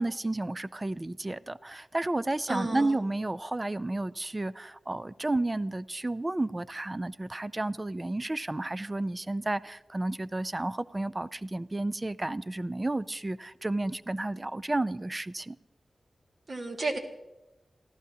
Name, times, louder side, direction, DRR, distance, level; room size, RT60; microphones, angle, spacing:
voice 1, 0.0-15.6, right 2 dB, 25° right, 0.4 m, -32 dB
voice 2, 2.5-3.0 16.5-17.0, right 2 dB, 45° right, 2.0 m, -32 dB
28.5 x 15.0 x 2.8 m
wide cardioid pair, 95°, 0 cm